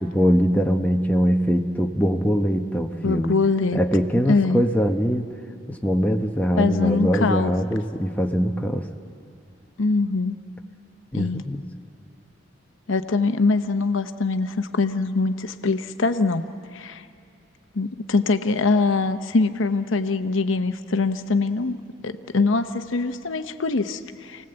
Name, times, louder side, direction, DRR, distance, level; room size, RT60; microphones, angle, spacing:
voice 1, 0.0-3.3 3.7-5.3 5.7-8.8 11.1-11.6, equal, 10° left, 2 dB, 0.9 m, -22 dB
voice 2, 3.0-3.8 4.3-4.7 6.6-7.5 9.8-10.4 11.1-11.4 12.9-16.5 16.7-17.1 17.7-21.8 22.0-24.5, left 3 dB, 75° left, 9 dB, 0.8 m, -23 dB
29.5 x 19.0 x 7.9 m, 2.4 s
head